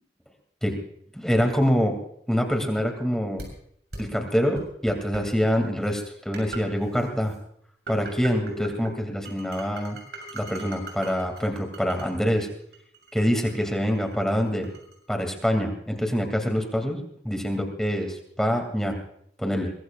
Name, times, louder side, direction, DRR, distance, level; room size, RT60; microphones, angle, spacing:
voice 1, 1.1-2.0 2.3-3.4 4.0-7.3 7.9-10.0 10.3-12.5 13.1-14.7 15.1-19.0 19.4-19.7, equal, 5° left, 4 dB, 2.4 m, -25 dB
sound 1, 3.4-3.5 3.9-4.0 4.5-5.2 5.9-6.0 6.3-6.6 6.9-7.4 7.9-8.9 9.2-12.1 12.4-14.9, right 2 dB, 70° right, 6.7 m, -39 dB
23.5 x 20.5 x 2.4 m, 0.69 s
head